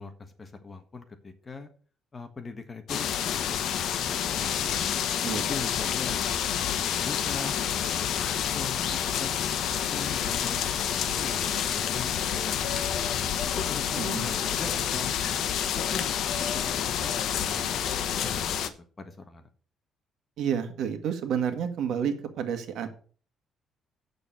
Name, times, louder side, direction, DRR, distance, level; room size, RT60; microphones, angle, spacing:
voice 1, 0.0-1.7 2.1-4.9 5.3-9.3 9.9-15.1 15.7-16.1 16.6-17.9 18.2-18.6 19.0-19.5, left 4 dB, 20° left, 7 dB, 1.4 m, -41 dB
sound 1, 2.9-18.7, left 9 dB, 70° left, 1.0 m, -28 dB
voice 2, 14.0-14.3 20.4-22.9, right 8 dB, 70° right, 7 dB, 1.8 m, -30 dB
8.4 x 6.9 x 6.9 m, 0.42 s
cardioid pair, 150°, 0 cm